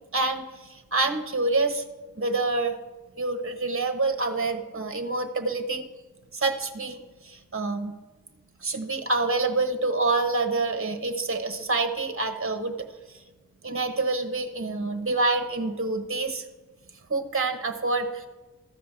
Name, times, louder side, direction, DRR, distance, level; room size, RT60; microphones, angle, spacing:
voice 1, 0.1-1.8 2.1-2.8 3.2-5.9 6.3-7.9 8.6-13.2 13.6-16.5 17.1-18.3, right 3 dB, 45° right, 7 dB, 0.9 m, -27 dB
13.5 x 5.1 x 7.3 m, 1.2 s
wide cardioid pair, 50°, 32 cm